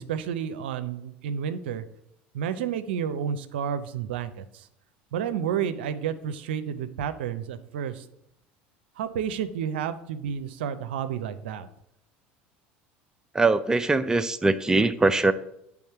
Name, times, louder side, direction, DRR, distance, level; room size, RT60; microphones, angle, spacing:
voice 1, 0.0-1.8 2.3-4.7 5.1-8.0 9.0-11.7, right 8 dB, 85° right, 11 dB, 0.5 m, -31 dB
voice 2, 13.3-15.3, right 3 dB, 10° right, 10 dB, 0.4 m, -22 dB
8.5 x 3.6 x 4.5 m, 0.77 s
hypercardioid pair, 85°, 6 cm